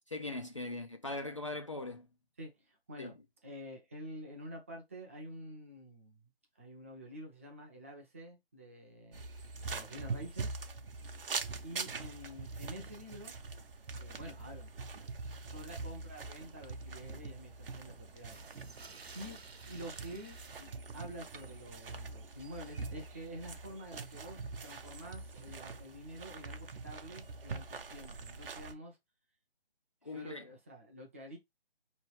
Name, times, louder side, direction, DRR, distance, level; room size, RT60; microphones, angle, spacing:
voice 1, 0.1-2.1 3.0-3.1 30.0-30.5, left 2 dB, 30° left, 0.4 m, -40 dB
voice 2, 2.4-3.2 3.4-6.2 6.6-9.2 9.7-10.5 11.6-13.3 14.0-14.7 15.2-18.4 19.1-19.4 19.7-29.0 30.0-31.4, equal, 15° right, 0.5 m, -48 dB
sound 1, 9.1-28.7, right 4 dB, 65° right, 0.8 m, -44 dB
sound 2, 11.5-11.6 11.8-11.9 12.5-12.6 18.1-20.6, right 4 dB, 85° right, 0.9 m, -54 dB
4.5 x 3.1 x 3.2 m
figure-of-eight pair, 150°, 31 cm